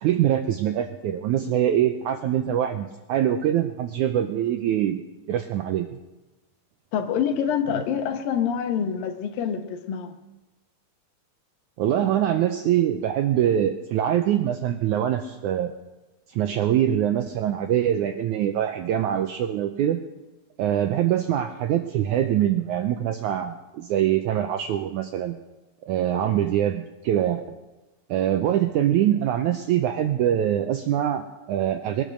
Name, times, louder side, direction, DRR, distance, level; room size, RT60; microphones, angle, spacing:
voice 1, 0.0-5.0 5.3-5.9 11.8-15.7 16.3-20.0 20.6-25.4 25.8-27.4 28.1-32.0, right 11 dB, 80° right, 7 dB, 1.8 m, -24 dB
voice 2, 6.9-10.2, left 8 dB, 75° left, 7 dB, 2.8 m, -26 dB
21.0 x 10.5 x 6.4 m, 1.1 s
omnidirectional pair, 4.3 m